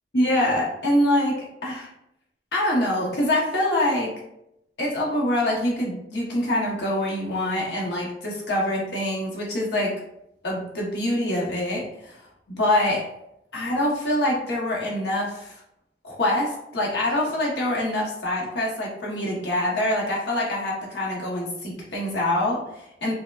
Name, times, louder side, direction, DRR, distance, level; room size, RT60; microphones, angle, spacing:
voice 1, 0.1-1.9 2.5-4.2 4.8-10.0 10.4-12.2 12.5-13.1 13.5-15.6 16.0-23.1, left 1 dB, 70° left, -3 dB, 0.9 m, -25 dB
4.5 x 2.1 x 2.3 m, 0.81 s
head